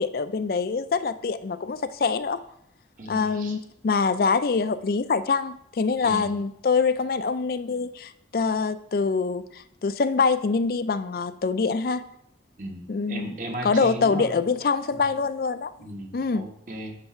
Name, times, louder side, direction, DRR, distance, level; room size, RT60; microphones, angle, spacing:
voice 1, 0.0-2.4 3.1-12.0 12.9-13.4 13.6-15.7 16.1-16.5, left 4 dB, 55° left, 13 dB, 0.4 m, -25 dB
voice 2, 3.0-3.6 6.0-6.4 12.6-14.3 15.8-16.9, right 1 dB, 50° right, 2 dB, 1.2 m, -36 dB
9.7 x 3.4 x 5.7 m, 0.75 s
head